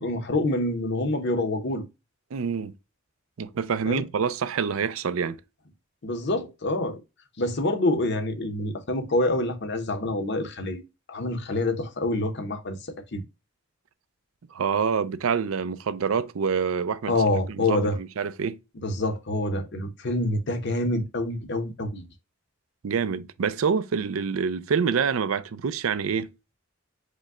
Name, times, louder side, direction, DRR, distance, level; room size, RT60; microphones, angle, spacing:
voice 1, 0.0-1.9 3.9-4.0 6.0-7.0 7.4-10.8 11.1-12.8 13.1-13.2 17.1-18.0 18.8-22.1, left 2 dB, 55° left, 0.8 m, -26 dB
voice 2, 2.3-2.7 3.4-5.4 14.5-17.1 17.5-18.6 22.8-26.3, right 6 dB, 90° right, 0.5 m, -26 dB
5.1 x 2.2 x 3.5 m
head